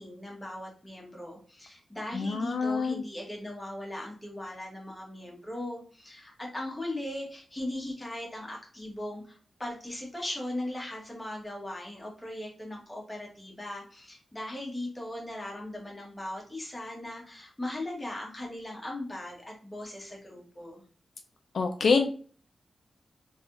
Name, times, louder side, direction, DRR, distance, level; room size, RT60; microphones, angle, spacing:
voice 1, 0.0-20.8, left 1 dB, 10° left, -1 dB, 1.2 m, -38 dB
voice 2, 2.1-3.0 21.5-22.1, left 4 dB, 65° left, 5 dB, 0.4 m, -26 dB
3.3 x 3.3 x 2.6 m, 0.42 s
wide cardioid pair, 160°, 0 cm